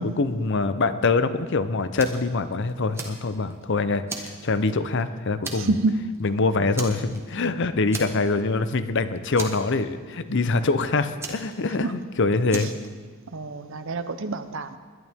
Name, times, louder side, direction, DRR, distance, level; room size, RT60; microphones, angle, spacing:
voice 1, 0.0-5.8 6.2-12.7, left 3 dB, 55° left, 12 dB, 0.6 m, -24 dB
Fire, 2.0-2.3 2.7-3.6 4.1-5.0 5.4-5.9 6.1-6.3 6.7-7.5 7.9-8.5 8.8-8.9 9.4-10.2 11.2-12.0 12.5-12.9, right 3 dB, 10° right, 1.3 m, -36 dB
voice 2, 5.6-5.9 6.6-6.7 11.8-11.9 13.3-14.8, right 3 dB, 60° right, 11 dB, 0.7 m, -27 dB
21.0 x 11.0 x 3.6 m, 1.5 s
head